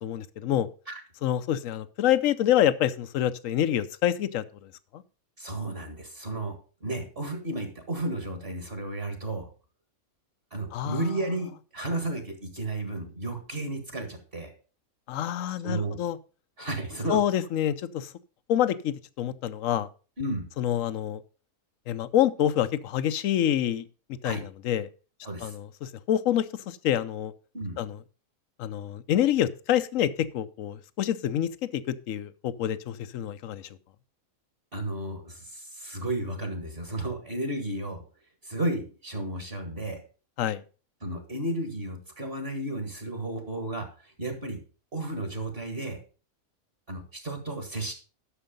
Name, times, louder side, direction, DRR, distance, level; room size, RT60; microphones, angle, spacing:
voice 1, 0.0-0.7 1.2-5.0 10.7-11.1 15.1-16.2 17.1-18.1 18.5-19.9 20.6-21.2 21.9-23.8 24.2-24.9 25.4-27.3 27.8-28.0 28.6-33.7 40.4-40.6, left 11 dB, 70° left, 15 dB, 1.1 m, -27 dB
voice 2, 5.4-9.5 10.5-14.5 15.6-16.0 16.6-17.2 20.2-20.5 24.2-24.4 25.2-25.5 27.5-27.8 34.7-38.0 38.4-40.0 41.0-44.6 44.9-46.0 46.9-47.9, right 1 dB, 40° right, 5 dB, 2.2 m, -33 dB
11.5 x 6.6 x 5.2 m, 0.37 s
omnidirectional pair, 1.5 m